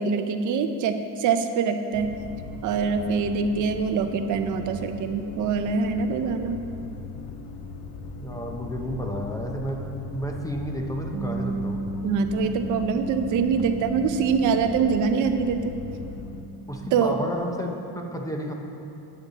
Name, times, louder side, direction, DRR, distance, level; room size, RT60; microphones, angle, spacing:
voice 1, 0.0-2.2 2.6-6.6 12.0-15.8 16.9-17.2, right 5 dB, 50° right, 8 dB, 0.6 m, -24 dB
sound 1, 1.9-16.4, left 4 dB, 60° left, 1.0 m, -39 dB
voice 2, 8.2-9.8 10.1-11.8 16.7-18.5, equal, 10° left, 1 dB, 0.6 m, -31 dB
Bass guitar, 11.1-17.4, right 1 dB, 80° right, 1.1 m, -35 dB
12.5 x 8.8 x 4.0 m, 2.7 s
cardioid pair, 160°, 40 cm